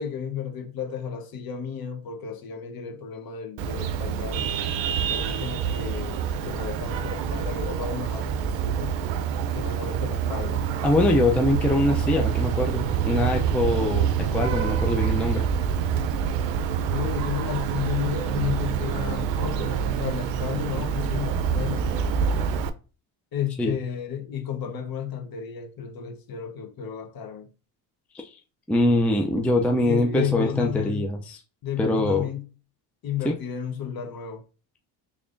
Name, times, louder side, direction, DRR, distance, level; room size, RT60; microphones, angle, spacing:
voice 1, 0.0-4.5 5.1-9.0 9.5-10.6 16.9-21.9 23.3-27.5 29.8-31.1 31.6-32.4 33.0-34.4, left 8 dB, 45° left, 1.0 m, -32 dB
Vehicle horn car horn honking, 3.6-22.7, right 7 dB, 65° right, 0.6 m, -26 dB
voice 2, 10.8-15.5 23.6-23.8 28.1-28.3 28.7-31.4 31.8-32.3 33.2-33.3, left 2 dB, 5° left, 0.4 m, -23 dB
3.5 x 3.4 x 2.5 m
supercardioid pair, 95°, 49 cm